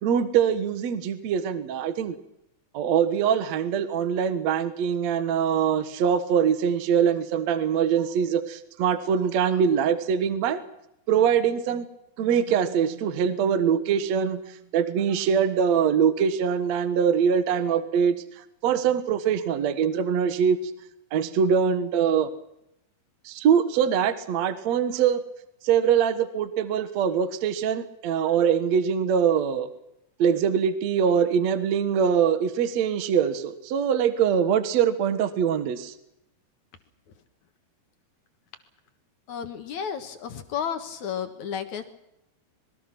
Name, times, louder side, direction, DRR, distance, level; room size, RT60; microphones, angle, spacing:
voice 1, 0.0-2.2 2.7-10.6 11.1-11.9 12.2-18.2 18.6-20.6 21.1-22.3 23.3-25.2 25.6-29.7 30.2-35.9, right 7 dB, 60° right, 11 dB, 2.0 m, -23 dB
voice 2, 39.3-41.8, left 8 dB, 55° left, 8 dB, 2.3 m, -32 dB
26.5 x 22.0 x 6.1 m, 0.82 s
omnidirectional pair, 4.9 m